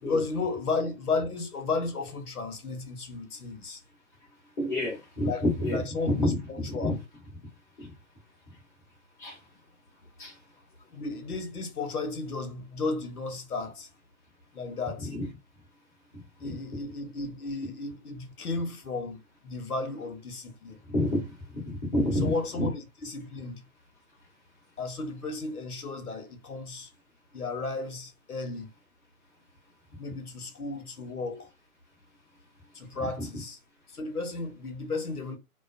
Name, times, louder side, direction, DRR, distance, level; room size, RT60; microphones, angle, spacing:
voice 1, 0.0-3.8 5.2-5.4 5.7-6.9 10.9-13.9 14.5-15.1 16.4-20.8 22.2-23.6 24.8-26.9 27.3-28.7 30.0-31.5 32.7-33.6 33.9-35.4, left 3 dB, 80° left, 1.0 m, -34 dB
voice 2, 4.6-6.3 6.6-6.9 7.8-7.9 9.2-9.4 10.2-10.3 15.1-15.3 20.9-21.2 21.5-22.3 22.6-22.7 33.2-33.3, left 1 dB, 10° left, 0.8 m, -28 dB
2.4 x 2.3 x 2.4 m
hypercardioid pair, 160°, 44 cm